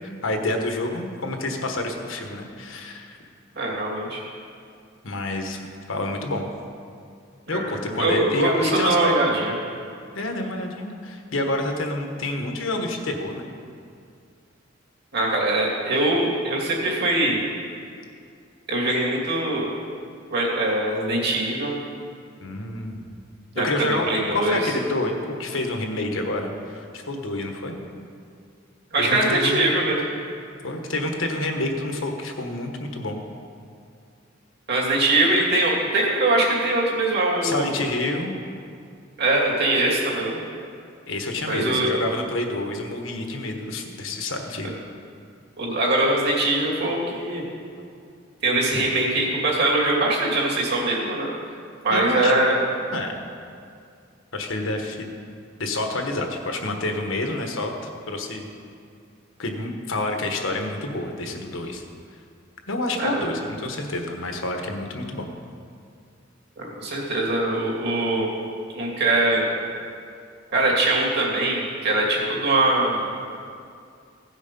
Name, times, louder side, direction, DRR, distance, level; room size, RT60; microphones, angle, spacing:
voice 1, 0.0-3.2 5.0-5.6 5.9-6.4 7.5-9.1 10.1-13.5 22.4-23.0 23.6-27.8 29.0-29.6 30.6-33.2 37.4-38.3 41.1-44.7 51.9-52.3 52.9-53.1 54.3-55.1 55.6-57.7 58.1-58.5 59.4-61.8 62.7-65.3, left 2 dB, 80° left, 4 dB, 1.3 m, -28 dB
voice 2, 3.6-4.2 7.5-7.7 8.0-9.5 15.1-17.4 18.7-19.7 20.3-21.7 23.5-24.6 28.9-30.0 34.7-37.6 39.2-40.4 41.5-41.9 44.6-44.7 45.6-47.4 48.4-51.3 51.8-52.7 63.0-63.2 66.6-68.3 68.7-69.5 70.5-73.1, right 2 dB, 55° right, -3 dB, 2.6 m, -22 dB
16.5 x 6.3 x 5.3 m, 2.4 s
head